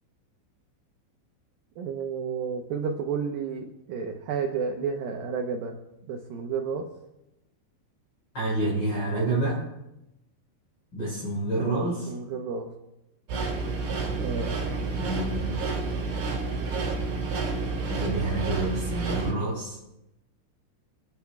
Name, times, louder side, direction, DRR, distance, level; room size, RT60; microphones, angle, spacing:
voice 1, 1.8-5.8 6.1-6.9 11.5-12.7 14.2-14.6, right 5 dB, 85° right, 3 dB, 2.0 m, -31 dB
voice 2, 8.3-9.7 10.9-12.1 14.9-15.6 17.9-19.8, right 2 dB, 25° left, -8 dB, 5.9 m, -28 dB
sound 1, 13.3-19.3, right 3 dB, 65° right, 6.4 m, -29 dB
27.5 x 10.0 x 2.3 m, 0.91 s
omnidirectional pair, 5.4 m